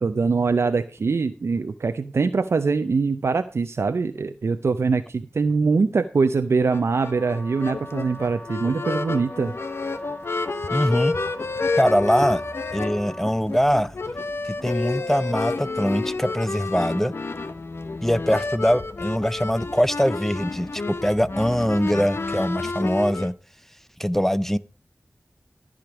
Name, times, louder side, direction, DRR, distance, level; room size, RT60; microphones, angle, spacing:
voice 1, 0.0-9.5, right 4 dB, 85° right, 0.5 m, -23 dB
sound 1, 6.7-23.3, left 3 dB, 65° left, 0.9 m, -30 dB
Wind instrument woodwind instrument, 6.9-13.4, left 1 dB, 40° left, 1.1 m, -42 dB
voice 2, 10.7-11.2 11.8-12.4 12.7-13.9 14.4-17.1 18.0-23.3 24.0-24.6, equal, 5° left, 0.4 m, -22 dB
13.5 x 5.1 x 6.1 m
wide cardioid pair, 60°, 4 cm